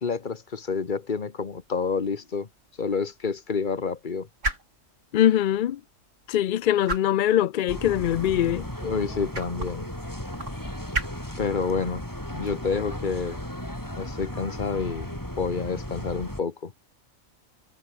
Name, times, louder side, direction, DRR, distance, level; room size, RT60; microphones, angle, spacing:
voice 1, 0.0-2.5 2.8-4.3 8.8-9.9 11.4-12.0 12.3-13.4 13.9-15.1 15.4-16.7, left 5 dB, 40° left, 1.4 m, -29 dB
sound 1, 1.4-15.0, right 2 dB, 65° right, 5.9 m, -39 dB
voice 2, 5.1-5.8 6.3-8.7, left 11 dB, 70° left, 0.4 m, -22 dB
sound 2, 7.7-16.4, left 1 dB, 15° left, 5.4 m, -35 dB
omnidirectional pair, 1.3 m